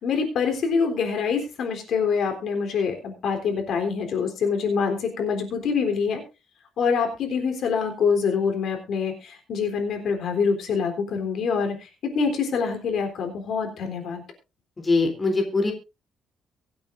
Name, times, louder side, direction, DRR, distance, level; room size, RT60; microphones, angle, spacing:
voice 1, 0.0-6.2 6.8-11.7 12.1-14.2, left 5 dB, 60° left, 4 dB, 3.7 m, -25 dB
voice 2, 14.8-15.7, left 3 dB, 20° left, 3 dB, 3.4 m, -22 dB
24.0 x 8.7 x 2.6 m, 0.27 s
cardioid pair, 145°, 0 cm